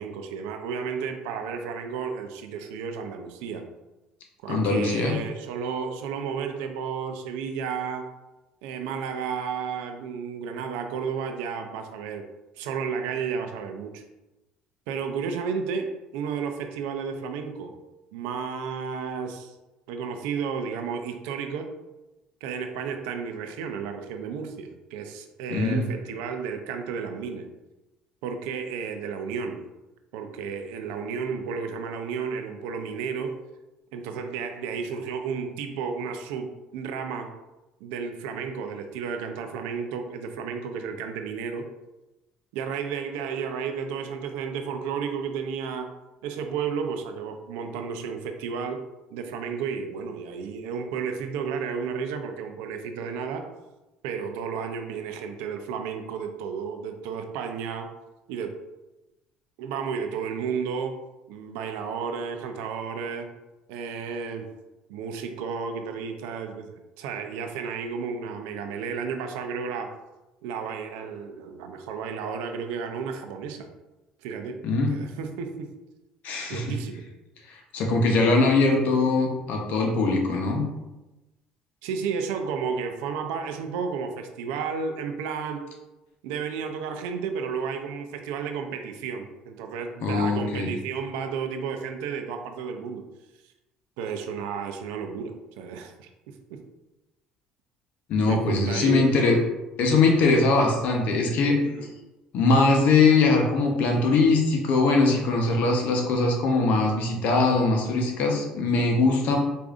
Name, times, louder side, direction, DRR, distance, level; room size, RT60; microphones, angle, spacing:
voice 1, 0.0-3.6 4.4-8.1 8.6-12.3 12.6-14.0 14.9-17.8 18.1-19.6 19.9-21.7 22.4-27.5 28.2-29.6 30.1-33.4 33.9-37.3 37.8-41.6 42.5-45.9 46.2-48.8 49.1-53.5 54.0-57.9 58.3-58.6 59.6-61.0 61.3-63.3 63.7-64.5 64.9-70.0 70.4-73.7 74.2-74.6 74.9-75.7 76.5-77.0 81.8-85.7 86.2-93.0 94.0-96.1 96.5-96.6 98.3-99.3 101.6-101.9, right 6 dB, 85° right, 6 dB, 0.4 m, -32 dB
voice 2, 4.5-5.2 25.5-25.9 74.6-74.9 76.2-76.8 77.5-80.6 90.0-90.7 98.1-99.4 99.8-101.6 102.3-109.4, left 3 dB, 65° left, 2 dB, 0.8 m, -21 dB
4.8 x 2.5 x 2.4 m, 1.0 s
supercardioid pair, 85°, 3 cm